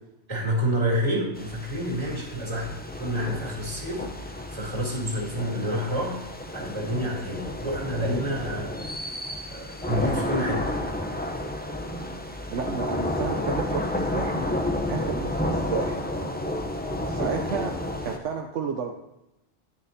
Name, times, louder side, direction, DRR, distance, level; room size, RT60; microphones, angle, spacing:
voice 1, 0.3-6.2 6.5-8.7 9.5-10.6, equal, 25° right, -4 dB, 3.1 m, -28 dB
sound 1, 1.3-18.2, left 1 dB, 10° left, 0.5 m, -31 dB
voice 2, 12.5-14.5 14.9-16.3 17.1-17.7 18.0-18.9, right 6 dB, 85° right, 3 dB, 1.0 m, -32 dB
9.9 x 9.6 x 2.7 m, 0.90 s
omnidirectional pair, 1.2 m